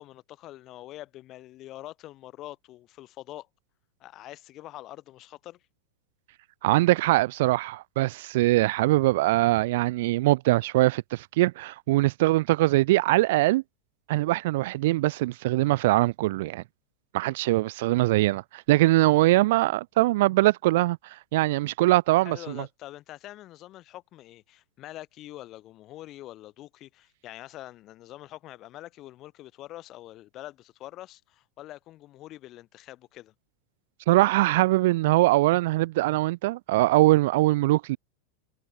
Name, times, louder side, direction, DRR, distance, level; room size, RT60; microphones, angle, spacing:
voice 1, 0.0-3.5 4.0-5.6 22.2-33.3, left 15 dB, 35° left, 6.0 m, -44 dB
voice 2, 6.6-13.6 14.1-16.6 17.1-21.0 21.3-22.4 34.1-38.0, right 18 dB, 50° right, 0.5 m, -22 dB
figure-of-eight pair, 90°, 0 cm